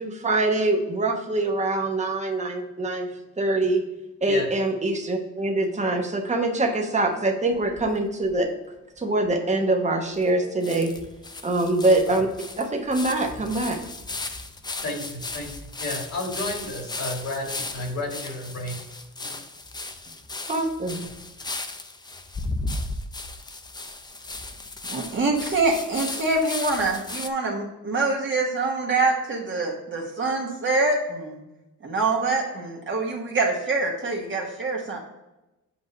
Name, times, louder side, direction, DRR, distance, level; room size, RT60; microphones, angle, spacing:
voice 1, 0.0-3.1 3.4-3.8 4.2-8.5 9.0-10.9 11.4-12.3 12.6-13.8 20.5-21.1, right 2 dB, 20° right, 3 dB, 1.0 m, -24 dB
sound 1, 7.5-8.5 9.0-9.1 9.3-9.4 10.2-10.3 10.6-27.3, left 2 dB, 15° left, 0.4 m, -36 dB
voice 2, 14.8-18.8 19.2-19.3, left 2 dB, 55° left, 0 dB, 1.7 m, -32 dB
voice 3, 24.9-31.4 31.8-35.0, right 3 dB, 40° right, -1 dB, 1.2 m, -25 dB
7.8 x 2.6 x 5.4 m, 0.98 s
cardioid pair, 115°, 32 cm